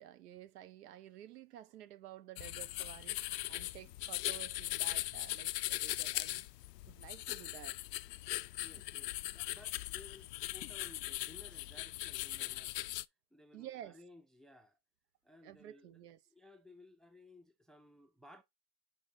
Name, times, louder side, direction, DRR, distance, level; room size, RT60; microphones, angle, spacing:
voice 1, 0.0-6.4 6.9-7.8 13.5-14.0 15.4-16.2, right 12 dB, 70° right, 1.5 m, -52 dB
sound 1, 2.4-13.0, left 17 dB, 80° left, 0.6 m, -40 dB
voice 2, 8.6-13.0 13.3-14.8 15.2-18.4, left 2 dB, ahead, 0.6 m, -59 dB
8.5 x 3.9 x 4.0 m
hypercardioid pair, 120°, 49 cm